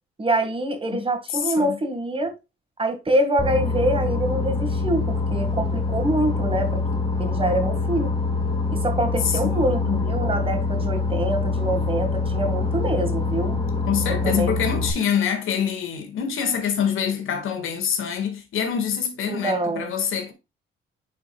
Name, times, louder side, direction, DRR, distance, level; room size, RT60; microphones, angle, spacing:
voice 1, 0.2-2.4 2.8-6.8 7.2-8.1 8.7-13.6 14.1-14.6 19.3-19.9, right 1 dB, 25° right, 1.9 m, -25 dB
voice 2, 1.4-1.8 9.2-10.0 11.6-12.1 13.9-20.3, left 7 dB, 80° left, 1.8 m, -26 dB
Boat Water vehicle, 3.4-14.9, left 3 dB, 25° left, 2.1 m, -25 dB
9.5 x 4.7 x 2.4 m
cardioid pair, 105°, 21 cm